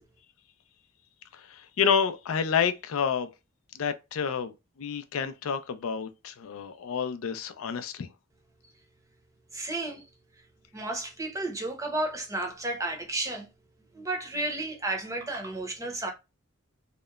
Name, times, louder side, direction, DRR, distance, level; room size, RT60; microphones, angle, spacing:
voice 1, 1.3-3.3 3.7-4.5 4.8-8.1, left 7 dB, 80° left, 0.4 m, -29 dB
voice 2, 9.5-10.0 10.7-13.5 13.9-16.1, right 2 dB, 15° right, 0.6 m, -32 dB
2.8 x 2.1 x 2.2 m
head